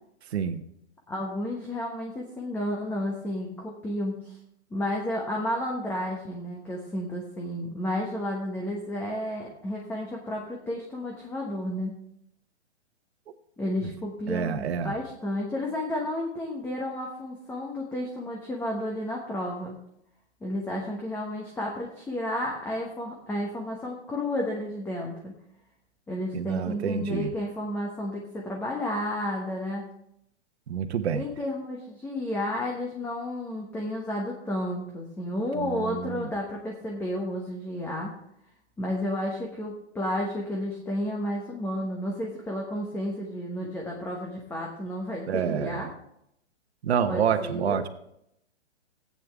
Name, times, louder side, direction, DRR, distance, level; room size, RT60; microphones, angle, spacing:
voice 1, 1.1-4.4 4.7-12.0 13.6-19.7 20.4-25.3 26.1-29.8 31.1-38.2 38.8-45.9 47.1-47.8, left 1 dB, 5° left, -1 dB, 1.1 m, -32 dB
voice 2, 14.3-14.9 26.3-27.3 30.7-31.2 35.6-36.3 45.3-45.8 46.8-47.9, right 7 dB, 65° right, 8 dB, 1.2 m, -28 dB
15.0 x 8.9 x 3.6 m, 0.77 s
hypercardioid pair, 145°, 34 cm